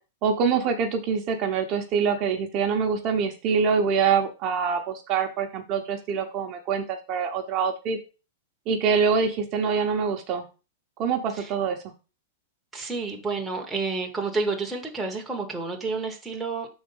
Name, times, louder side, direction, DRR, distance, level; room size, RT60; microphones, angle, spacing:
voice 1, 0.2-8.0 8.7-10.4 11.0-11.8, right 6 dB, 30° right, 3 dB, 0.9 m, -25 dB
voice 2, 12.7-16.7, right 3 dB, 5° right, -1 dB, 0.9 m, -30 dB
5.9 x 4.0 x 5.4 m, 0.32 s
supercardioid pair, 165°, 0 cm